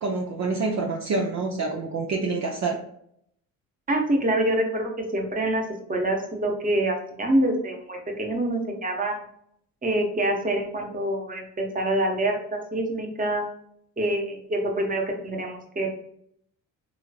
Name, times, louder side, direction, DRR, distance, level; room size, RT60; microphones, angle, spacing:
voice 1, 0.0-2.8, right 3 dB, 40° right, 0 dB, 0.7 m, -27 dB
voice 2, 3.9-5.6 5.9-9.2 9.8-13.4 14.0-15.9, right 1 dB, 20° right, 2 dB, 1.0 m, -26 dB
3.7 x 3.2 x 2.3 m, 0.70 s
hypercardioid pair, 55°, 42 cm